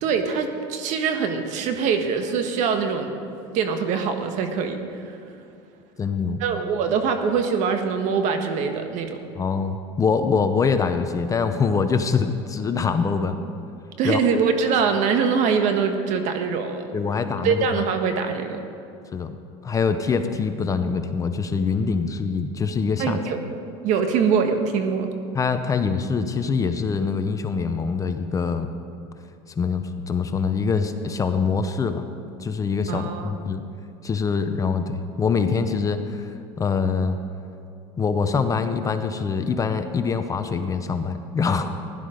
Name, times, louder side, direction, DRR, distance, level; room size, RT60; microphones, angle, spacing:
voice 1, 0.0-3.1 3.5-4.8 6.4-9.2 14.0-16.8 17.4-18.6 23.0-23.4 23.8-25.1 32.9-33.3, right 6 dB, 55° right, 6 dB, 1.5 m, -23 dB
voice 2, 6.0-6.4 9.3-13.4 14.0-14.2 16.9-17.8 19.1-19.4 19.6-23.2 25.3-28.7 29.5-32.1 32.4-33.6 34.0-37.2 38.0-41.7, left 5 dB, 20° left, 8 dB, 0.8 m, -24 dB
16.0 x 11.5 x 5.1 m, 2.5 s
supercardioid pair, 120°, 15 cm